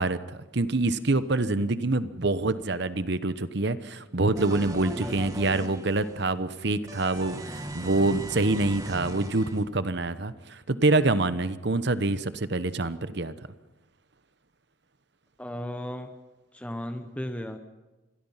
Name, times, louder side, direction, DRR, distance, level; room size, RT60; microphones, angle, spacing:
voice 1, 0.0-13.3, right 2 dB, 55° right, 13 dB, 1.0 m, -26 dB
sound 1, 4.4-6.3 6.9-9.6, right 1 dB, 15° right, 1.8 m, -38 dB
voice 2, 5.0-5.4 15.4-16.2 16.5-17.6, equal, 5° left, 6 dB, 1.0 m, -35 dB
27.0 x 21.5 x 5.7 m, 1.1 s
head